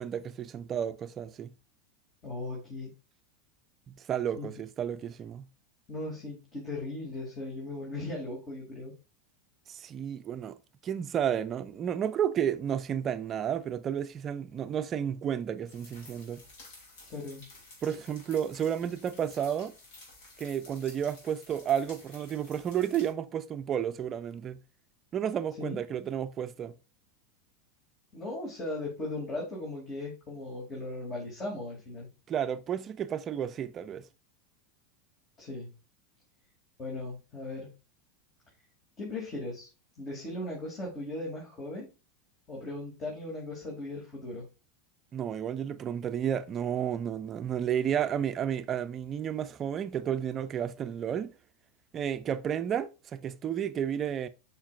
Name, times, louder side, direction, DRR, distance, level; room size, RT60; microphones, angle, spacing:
voice 1, 0.0-1.5 3.9-5.5 9.7-10.6 10.8-16.4 17.8-19.7 20.4-24.6 25.1-26.7 32.3-34.0 45.1-51.3 51.9-54.3, right 9 dB, 35° right, 0.5 m, -32 dB
voice 2, 2.2-2.9 4.4-4.5 5.9-8.9 17.0-17.4 25.6-25.8 28.1-32.1 35.4-35.7 36.8-37.7 39.0-39.7 40.0-41.9 42.5-44.4, left 2 dB, 35° left, 2.8 m, -38 dB
sound 1, 15.7-23.1, left 2 dB, 70° left, 2.8 m, -53 dB
7.2 x 5.2 x 2.5 m
hypercardioid pair, 100°, 0 cm